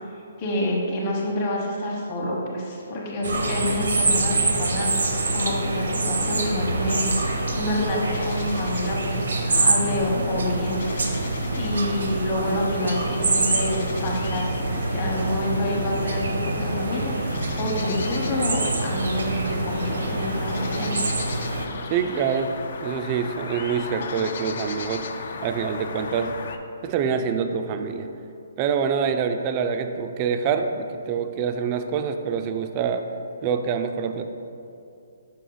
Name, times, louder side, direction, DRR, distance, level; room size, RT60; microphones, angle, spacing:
voice 1, 0.4-11.1 11.6-21.0, left 1 dB, 30° left, -4 dB, 1.0 m, -28 dB
sound 1, 3.2-21.7, right 2 dB, 90° right, 0.8 m, -26 dB
sound 2, 7.0-26.6, left 4 dB, 55° left, 0.4 m, -37 dB
voice 2, 21.9-22.5 22.8-25.0 25.4-26.3 26.8-28.1 28.6-33.0 33.4-34.3, right 6 dB, 25° right, 7 dB, 0.3 m, -25 dB
5.3 x 4.8 x 3.9 m, 2.6 s
hypercardioid pair, 160°, 0 cm